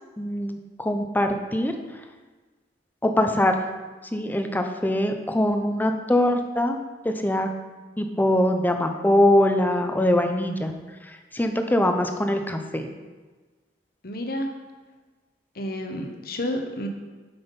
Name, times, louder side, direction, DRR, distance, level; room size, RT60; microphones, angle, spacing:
voice 1, 0.2-1.7 3.0-3.6 4.1-6.8 7.0-7.5 8.0-10.7 11.0-12.9, left 1 dB, 10° left, 6 dB, 0.6 m, -23 dB
voice 2, 14.0-14.6 15.5-16.9, left 1 dB, 60° left, 4 dB, 1.0 m, -30 dB
8.0 x 5.8 x 5.3 m, 1.3 s
head